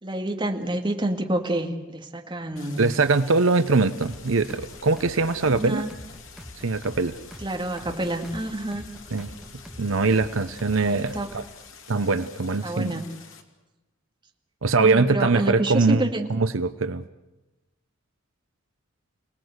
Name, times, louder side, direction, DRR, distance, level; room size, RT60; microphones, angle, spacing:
voice 1, 0.0-2.9 5.5-5.9 7.4-8.8 10.7-11.3 12.6-13.1 14.8-16.3, right 1 dB, 25° right, 3 dB, 2.1 m, -28 dB
Stream, 2.6-13.4, left 6 dB, 80° left, 2.6 m, -48 dB
voice 2, 2.8-5.8 6.6-7.2 9.1-9.3 9.8-11.2 11.9-13.0 14.6-17.0, right 3 dB, 75° right, 11 dB, 0.8 m, -22 dB
sound 1, 4.0-11.5, equal, ahead, 2.1 m, -44 dB
29.0 x 19.0 x 8.0 m, 1.1 s
head